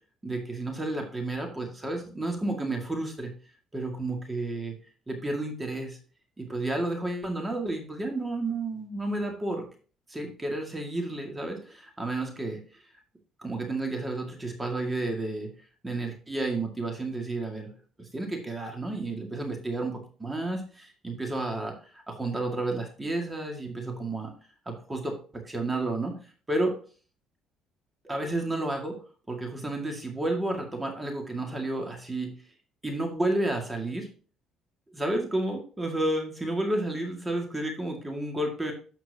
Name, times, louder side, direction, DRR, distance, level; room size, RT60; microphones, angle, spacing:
voice 1, 0.2-3.3 3.7-4.7 5.1-6.0 6.4-9.7 10.1-12.6 13.4-15.5 15.8-17.7 18.0-24.3 24.7-26.2 26.5-26.7 28.0-29.0 29.3-32.3 32.8-34.1 34.9-38.7, right 2 dB, 15° right, 2 dB, 2.1 m, -31 dB
13.0 x 4.5 x 2.9 m, 0.38 s
cardioid pair, 95°, 0 cm